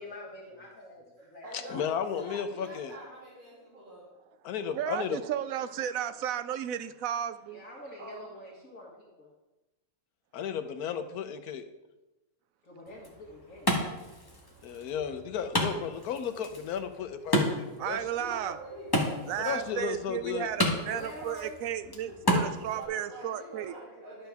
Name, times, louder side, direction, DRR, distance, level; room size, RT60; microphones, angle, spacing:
voice 1, 0.0-1.8 7.5-9.3 12.6-13.8 20.8-21.6 22.0-22.1, left 1 dB, 60° left, -4 dB, 2.0 m, -46 dB
voice 2, 1.2-4.1 8.0-8.3 18.1-20.7 22.1-22.4 22.7-24.3, right 1 dB, 30° right, -7 dB, 2.9 m, -46 dB
voice 3, 1.7-2.9 4.4-5.2 10.3-11.6 14.6-18.0 19.4-20.5, left 7 dB, 80° left, 9 dB, 1.2 m, -34 dB
voice 4, 4.7-7.6 17.8-18.6 19.3-23.7, right 10 dB, 70° right, 12 dB, 0.9 m, -33 dB
Wood, 12.9-22.9, equal, 15° left, 1.2 m, -33 dB
11.0 x 7.1 x 3.5 m, 1.0 s
omnidirectional pair, 1.6 m